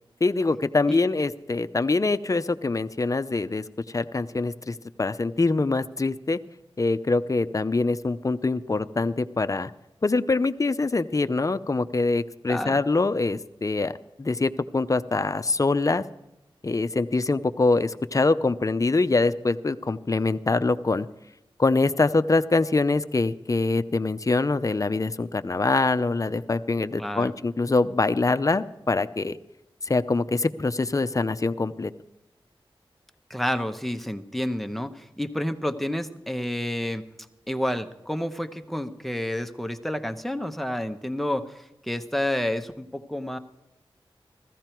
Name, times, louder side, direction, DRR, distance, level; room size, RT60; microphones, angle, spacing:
voice 1, 0.2-6.4 6.8-9.7 10.0-13.9 14.2-16.0 16.6-21.1 21.6-29.4 29.8-31.9, left 3 dB, 35° left, 11 dB, 0.7 m, -24 dB
voice 2, 12.5-12.8 27.0-27.3 33.3-37.0 37.5-43.4, left 1 dB, ahead, 7 dB, 1.0 m, -29 dB
15.0 x 15.0 x 4.5 m, 0.92 s
wide cardioid pair, 60°, 10 cm